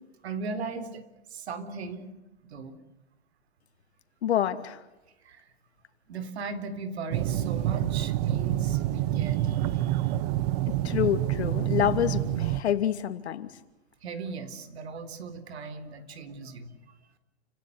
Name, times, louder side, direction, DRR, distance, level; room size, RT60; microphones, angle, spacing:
voice 1, 0.2-1.0 1.3-2.1 2.5-2.8 5.2-5.5 6.1-10.1 14.0-16.7, right 4 dB, 75° right, 12 dB, 4.0 m, -38 dB
voice 2, 4.2-4.8 10.7-13.5, left 10 dB, 75° left, 10 dB, 2.8 m, -27 dB
sound 1, 7.1-12.6, right 13 dB, 35° right, 1.0 m, -27 dB
30.0 x 17.0 x 9.6 m, 1.0 s
hypercardioid pair, 155°, 33 cm